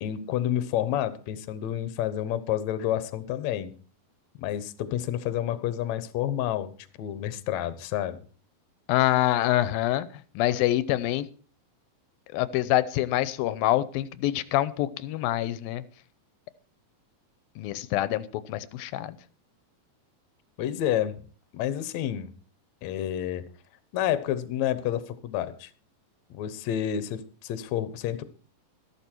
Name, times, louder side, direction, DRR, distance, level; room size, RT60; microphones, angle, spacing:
voice 1, 0.0-3.7 4.4-6.7 7.0-8.2 20.6-21.2 21.5-22.3 22.8-23.4 23.9-25.7 26.3-28.2, left 11 dB, 65° left, 13 dB, 2.0 m, -29 dB
voice 2, 8.9-10.1 10.4-11.3 12.3-15.8 17.6-19.2, left 14 dB, 90° left, 16 dB, 2.6 m, -26 dB
13.5 x 12.5 x 4.5 m, 0.40 s
omnidirectional pair, 4.1 m